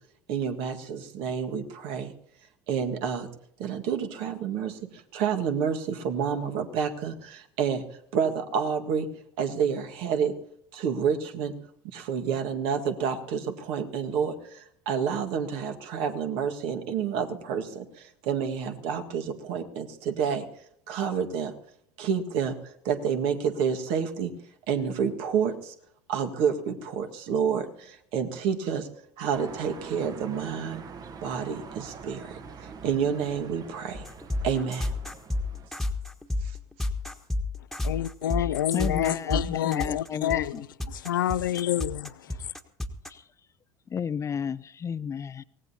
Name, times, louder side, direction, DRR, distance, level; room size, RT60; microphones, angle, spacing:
voice 1, 0.3-2.1 2.7-3.3 3.6-7.8 8.1-9.1 9.4-10.4 10.7-11.5 11.8-20.5 20.9-21.5 22.0-22.6 22.8-24.3 24.7-25.7 26.1-28.9 29.2-30.8 31.2-34.1 34.4-34.9, right 7 dB, 60° right, 1.7 m, -29 dB
sound 1, 29.3-35.7, right 5 dB, 35° right, 1.2 m, -44 dB
sound 2, 33.9-43.1, left 2 dB, ahead, 1.5 m, -30 dB
voice 2, 37.8-40.5 41.0-42.1, left 11 dB, 80° left, 0.5 m, -27 dB
voice 3, 38.4-40.7 42.3-42.5 43.1-43.2 43.9-45.4, left 7 dB, 30° left, 0.5 m, -33 dB
24.0 x 18.0 x 2.8 m
hypercardioid pair, 75°, 11 cm